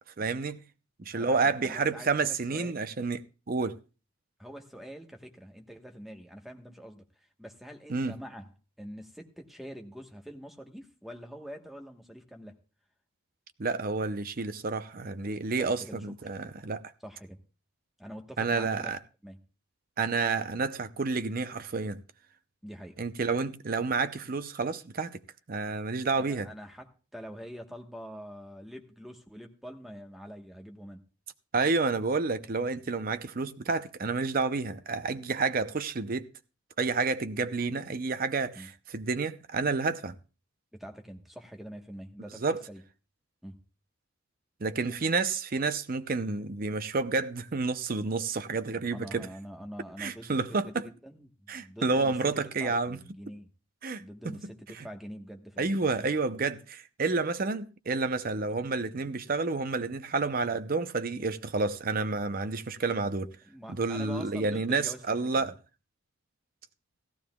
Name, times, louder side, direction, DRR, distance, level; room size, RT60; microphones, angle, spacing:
voice 1, 0.2-0.6 1.0-3.2 3.5-3.8 7.9-8.2 13.6-16.8 18.4-19.0 20.0-22.0 23.0-25.2 25.5-26.5 31.5-36.3 36.8-40.1 42.4-42.6 44.6-49.3 50.0-50.9 51.5-53.0 53.8-54.4 54.8-54.9 55.6-63.3 63.7-65.5, right 4 dB, 40° right, 0.6 m, -30 dB
voice 2, 1.2-2.8 4.4-8.5 8.8-12.6 15.6-16.3 17.0-17.4 18.0-18.9 19.2-19.4 22.6-23.0 26.2-31.0 38.5-38.7 40.7-42.8 43.4-43.6 48.9-52.1 52.6-53.5 54.0-56.2 63.4-65.5, equal, ahead, 1.1 m, -45 dB
16.5 x 14.5 x 2.3 m
head